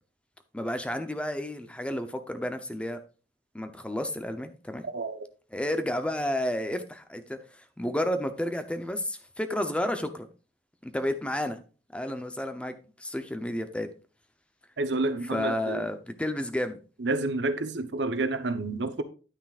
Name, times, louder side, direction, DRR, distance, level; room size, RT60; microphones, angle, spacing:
voice 1, 0.5-3.0 3.5-4.9 5.5-10.3 10.8-11.6 11.9-13.9 15.2-16.8, left 1 dB, 5° left, 0.7 m, -31 dB
voice 2, 14.8-15.8 17.0-19.0, right 2 dB, 75° right, 0.9 m, -29 dB
10.0 x 9.2 x 2.5 m
head